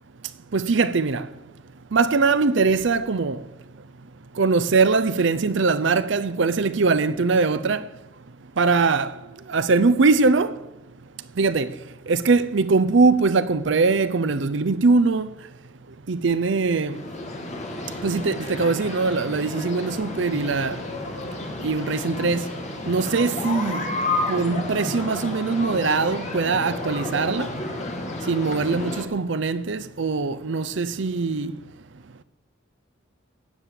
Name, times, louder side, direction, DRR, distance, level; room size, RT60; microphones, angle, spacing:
voice 1, 0.5-1.3 1.9-3.4 4.4-7.8 8.6-9.1 9.5-10.5 11.4-11.7 12.1-15.3 16.1-17.0 18.0-20.8 21.6-22.5 22.9-23.9 24.3-27.5 28.3-31.5, right 4 dB, 60° right, 0.6 m, -21 dB
sound 1, 16.9-29.0, left 2 dB, 35° left, 2.1 m, -31 dB
18.5 x 8.2 x 7.6 m
head